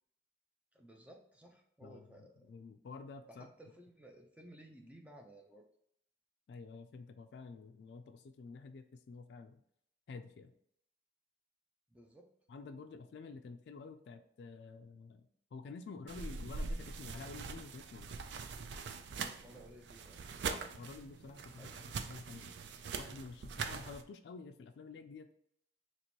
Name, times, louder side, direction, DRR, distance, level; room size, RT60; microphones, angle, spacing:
voice 1, 0.7-2.5 3.3-5.6 11.9-12.3 19.1-20.2 21.6-22.0, right 1 dB, 10° right, 1 dB, 0.5 m, -57 dB
voice 2, 1.8-3.5 6.5-9.6 10.1-10.5 12.5-18.1 20.4-22.6 23.0-25.3, left 4 dB, 80° left, 7 dB, 0.3 m, -50 dB
sound 1, 16.1-24.0, right 5 dB, 90° right, 0.4 m, -43 dB
3.0 x 2.9 x 4.3 m, 0.72 s
head